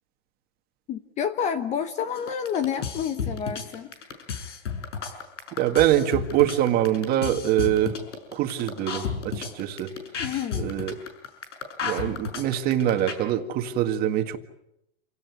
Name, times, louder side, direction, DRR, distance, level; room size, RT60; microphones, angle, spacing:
voice 1, 0.9-3.9 10.2-10.7, left 8 dB, 20° left, 11 dB, 1.0 m, -29 dB
sound 1, 2.2-13.1, left 6 dB, 85° left, 6.5 m, -32 dB
voice 2, 5.6-8.0 8.3-9.9 10.6-10.9 11.8-14.4, right 12 dB, 25° right, 7 dB, 1.9 m, -24 dB
28.0 x 17.5 x 9.5 m, 0.84 s
hypercardioid pair, 155°, 35 cm